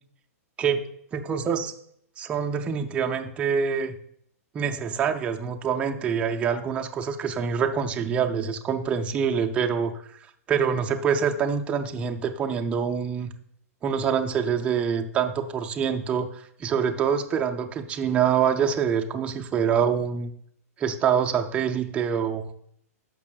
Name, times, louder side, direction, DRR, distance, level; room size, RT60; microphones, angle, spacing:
voice 1, 1.1-1.7 2.2-4.0 4.5-9.9 10.5-13.3 13.8-20.3 20.8-22.5, right 7 dB, 15° right, 4 dB, 0.4 m, -25 dB
13.0 x 5.4 x 2.3 m, 0.67 s
hypercardioid pair, 155°, 8 cm